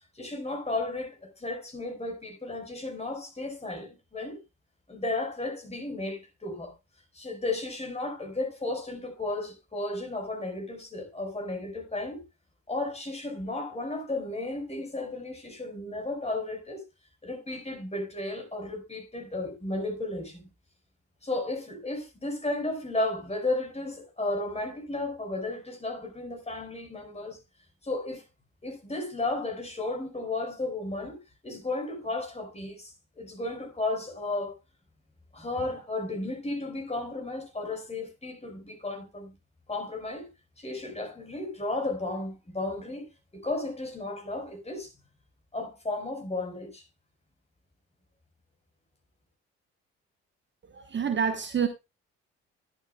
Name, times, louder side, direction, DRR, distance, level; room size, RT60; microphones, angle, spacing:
voice 1, 0.1-4.4 4.9-6.7 7.1-12.2 12.7-16.8 17.2-20.4 21.2-27.4 27.8-28.2 28.6-34.5 35.3-39.3 39.7-40.3 40.6-44.9 45.5-46.8, left 2 dB, 20° left, 4.8 m, -34 dB
voice 2, 50.7-51.7, right 7 dB, 35° right, 1.0 m, -27 dB
12.0 x 11.0 x 2.3 m
figure-of-eight pair, 45°, 34 cm